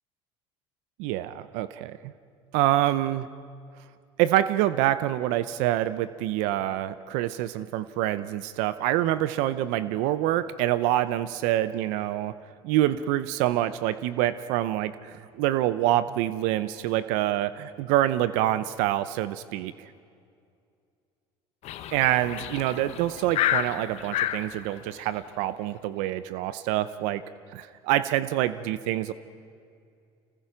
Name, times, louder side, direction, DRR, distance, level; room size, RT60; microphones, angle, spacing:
voice 1, 1.0-2.1 2.5-3.3 4.2-12.4 12.6-19.9 21.9-27.2 27.5-29.1, right 13 dB, 80° right, 14 dB, 0.7 m, -26 dB
sound 1, 21.6-24.4, left 12 dB, 60° left, 1.2 m, -29 dB
26.0 x 20.0 x 5.8 m, 2.3 s
supercardioid pair, 95°, 12 cm